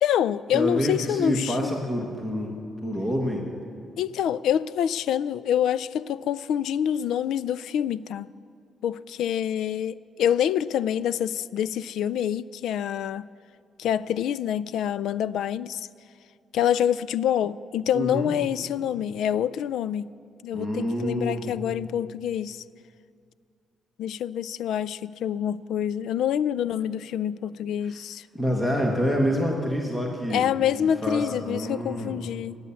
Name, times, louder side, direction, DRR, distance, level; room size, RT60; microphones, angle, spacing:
voice 1, 0.0-1.6 4.0-8.3 8.8-13.3 13.8-15.9 16.5-20.1 20.4-22.6 24.0-28.2 30.3-32.6, left 9 dB, 80° left, 0.3 m, -26 dB
voice 2, 0.5-2.5 2.8-3.5 17.9-18.4 20.5-21.5 27.9-28.0 28.3-30.5 31.0-32.2, equal, 5° left, 1.3 m, -27 dB
19.5 x 8.4 x 7.1 m
cardioid pair, 145°, 0 cm